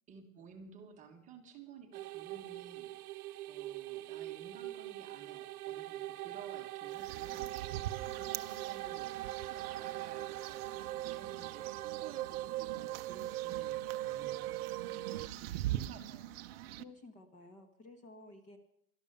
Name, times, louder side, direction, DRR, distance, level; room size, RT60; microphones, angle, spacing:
voice 1, 0.1-2.9 3.5-7.5 8.1-14.7 15.3-16.3, right 6 dB, 15° right, 3 dB, 1.3 m, -55 dB
sound 1, 1.9-15.3, right 15 dB, 90° right, 0.7 m, -41 dB
sound 2, 6.9-16.8, right 14 dB, 45° right, 0.7 m, -44 dB
voice 2, 14.9-16.0 16.8-18.6, left 2 dB, 15° left, 6 dB, 1.3 m, -55 dB
12.5 x 12.5 x 6.7 m, 0.76 s
supercardioid pair, 170°, 43 cm